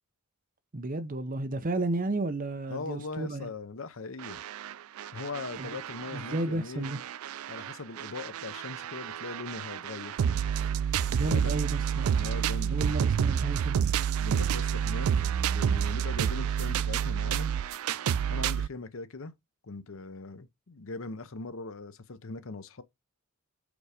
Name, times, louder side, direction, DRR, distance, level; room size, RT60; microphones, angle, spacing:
voice 1, 0.7-3.5 5.6-5.7 6.1-7.0 11.1-12.2 12.7-13.8, right 2 dB, 40° right, 0.7 m, -32 dB
voice 2, 2.7-4.4 5.1-6.9 7.5-10.3 11.3-11.6 12.2-12.8 14.2-17.5 18.3-19.3 19.6-22.8, left 3 dB, 60° left, 0.7 m, -40 dB
sound 1, 4.2-6.4 6.8-18.7, right 8 dB, 70° right, 0.3 m, -29 dB
5.2 x 4.7 x 5.0 m
head